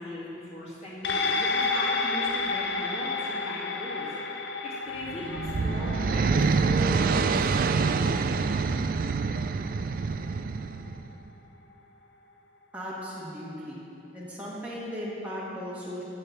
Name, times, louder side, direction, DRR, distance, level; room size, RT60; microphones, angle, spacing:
voice 1, 0.0-4.1 4.6-8.2, left 1 dB, 35° left, -8 dB, 2.4 m, -38 dB
sound 1, 1.0-9.7 10.1-10.2, left 3 dB, 70° left, 0.7 m, -31 dB
sound 2, 5.0-11.1, right 4 dB, 50° right, 0.3 m, -26 dB
voice 2, 12.7-13.8 14.1-16.0, equal, 10° right, -7 dB, 1.4 m, -37 dB
8.7 x 6.5 x 6.6 m, 2.9 s
head